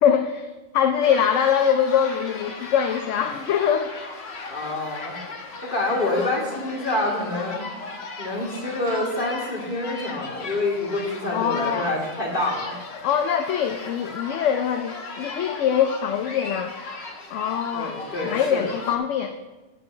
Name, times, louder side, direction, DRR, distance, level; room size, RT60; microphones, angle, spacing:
voice 1, 0.0-3.9 4.4-4.6 11.3-11.9 13.0-16.7 17.3-19.3, left 8 dB, 70° left, 7 dB, 0.9 m, -23 dB
sound 1, 1.0-19.0, left 3 dB, 55° left, 1.3 m, -37 dB
voice 2, 4.5-5.1 5.6-7.7 8.2-12.7 17.7-18.6, left 2 dB, 40° left, -4 dB, 2.8 m, -27 dB
10.0 x 5.0 x 7.8 m, 1.2 s
omnidirectional pair, 1.4 m